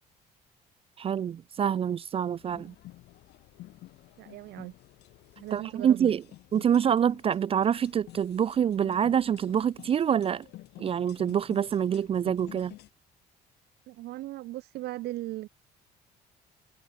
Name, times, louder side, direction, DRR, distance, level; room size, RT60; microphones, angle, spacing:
voice 1, 1.0-2.7 5.5-6.2 6.5-10.5 10.8-12.7, right 8 dB, 35° right, 0.4 m, -26 dB
sound 1, 2.3-12.9, left 16 dB, 80° left, 5.0 m, -51 dB
voice 2, 4.2-4.7 5.4-6.1 13.9-15.5, right 16 dB, 75° right, 0.8 m, -38 dB
cardioid pair, 110°, 17 cm